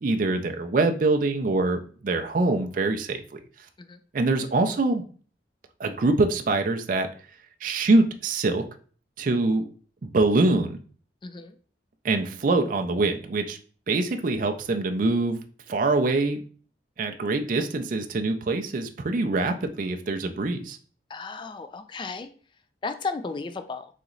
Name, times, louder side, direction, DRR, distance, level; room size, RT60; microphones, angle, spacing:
voice 1, 0.0-3.4 4.1-5.0 5.8-7.1 7.6-8.6 9.2-9.6 10.1-10.8 12.0-13.6 13.9-15.4 15.7-16.4 17.0-20.8, right 2 dB, 50° right, 6 dB, 0.4 m, -24 dB
voice 2, 11.2-11.5 21.1-22.3 22.8-23.9, left 4 dB, 25° left, 9 dB, 0.3 m, -34 dB
4.1 x 3.0 x 3.8 m, 0.43 s
head